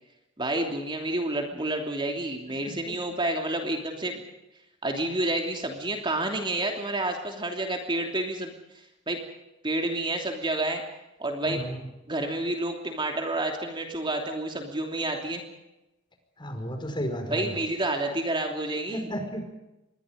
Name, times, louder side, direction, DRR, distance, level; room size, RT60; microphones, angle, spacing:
voice 1, 0.4-4.2 4.8-9.2 9.6-10.8 11.2-11.6 12.1-15.4 17.3-19.1, right 2 dB, 25° right, 3 dB, 3.0 m, -29 dB
voice 2, 2.6-3.0 11.4-11.8 16.4-17.5 18.9-19.4, equal, 25° left, 5 dB, 5.1 m, -33 dB
26.5 x 23.0 x 5.2 m, 0.94 s
head